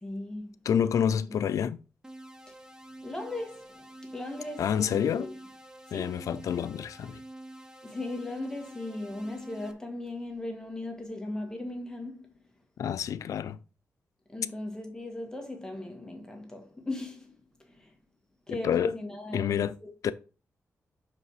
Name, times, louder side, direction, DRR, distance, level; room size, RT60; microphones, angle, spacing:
voice 1, 0.0-0.7 1.0-1.4 2.5-2.6 3.0-5.3 5.9-6.2 7.8-12.4 14.3-18.0 18.5-19.9, left 2 dB, 10° left, 1.8 m, -38 dB
voice 2, 0.7-1.8 4.6-5.3 5.9-7.2 12.8-13.6 18.5-18.9 19.3-19.7 20.0-20.1, left 8 dB, 90° left, 0.5 m, -28 dB
sound 1, 2.0-9.7, right 1 dB, 10° right, 0.8 m, -47 dB
5.8 x 5.3 x 4.8 m
wide cardioid pair, 110°, 5 cm